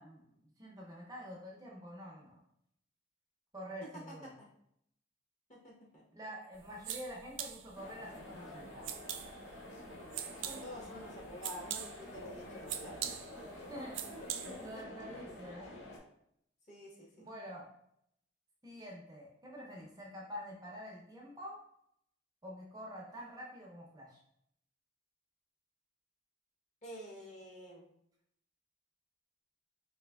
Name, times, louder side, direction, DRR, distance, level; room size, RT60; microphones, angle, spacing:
voice 1, 0.0-2.4 3.5-4.3 6.1-8.9 13.7-14.0 14.4-15.8 17.2-17.7 18.6-21.6 22.4-24.2, equal, 20° right, -3 dB, 0.5 m, -47 dB
voice 2, 3.8-4.5 5.5-6.0 10.4-13.0 14.5-15.0 16.7-17.2 26.8-27.9, equal, 40° left, -3 dB, 1.0 m, -49 dB
sound 1, 6.5-14.8, right 10 dB, 90° right, 0.3 m, -45 dB
sound 2, 7.7-16.0, left 1 dB, 65° left, 0.7 m, -49 dB
4.0 x 2.9 x 2.2 m, 0.73 s
head